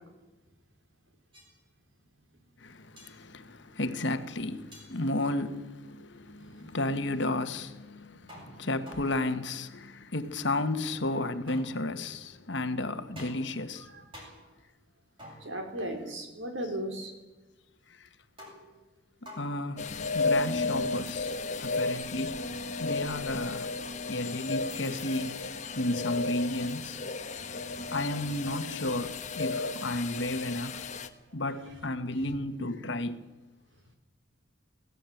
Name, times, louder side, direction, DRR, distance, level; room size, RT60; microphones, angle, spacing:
sound 1, 1.3-1.5 3.0-3.1 4.7-4.9 8.3-9.5 11.5-12.1 13.2-13.7 14.1-14.6 15.2-15.9 18.4-18.9 19.3-19.7, equal, 25° right, 8.0 m, -49 dB
voice 1, 2.6-13.9 18.0-18.1 19.2-21.3 21.6-22.4 22.8-23.7 24.1-25.4 25.7-27.0 27.9-30.8 31.3-33.2, left 2 dB, 60° left, 1.4 m, -33 dB
voice 2, 6.4-6.8 8.4-8.5 13.9-14.0 15.4-17.1 27.6-27.7 32.3-32.4, right 1 dB, 70° right, 4.0 m, -37 dB
sound 2, 19.8-31.1, left 3 dB, 35° left, 1.2 m, -33 dB
20.5 x 17.0 x 9.2 m
head